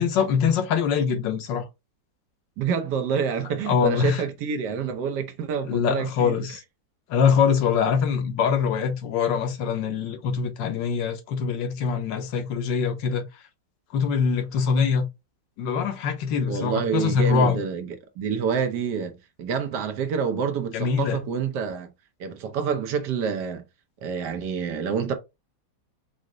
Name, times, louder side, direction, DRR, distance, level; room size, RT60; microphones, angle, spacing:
voice 1, 0.0-1.7 3.7-4.2 5.7-6.6 7.1-13.2 13.9-15.1 15.6-17.6 20.7-21.2, left 6 dB, 85° left, 1.5 m, -23 dB
voice 2, 2.6-6.4 16.5-21.9 22.2-23.6 24.0-25.1, right 6 dB, 70° right, 1.3 m, -27 dB
4.9 x 2.1 x 3.7 m
omnidirectional pair, 1.9 m